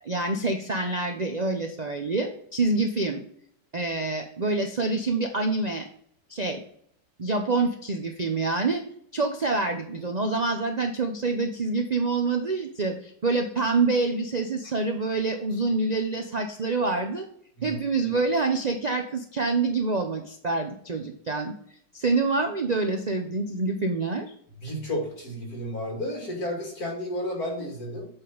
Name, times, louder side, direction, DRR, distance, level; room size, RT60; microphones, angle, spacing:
voice 1, 0.0-3.2 3.7-5.9 6.3-6.6 7.2-8.8 9.1-17.3 17.6-21.5 21.9-24.3, right 3 dB, 75° right, 5 dB, 0.3 m, -26 dB
voice 2, 24.6-28.1, left 1 dB, 60° left, 0 dB, 2.9 m, -32 dB
8.0 x 3.7 x 5.3 m, 0.65 s
omnidirectional pair, 1.8 m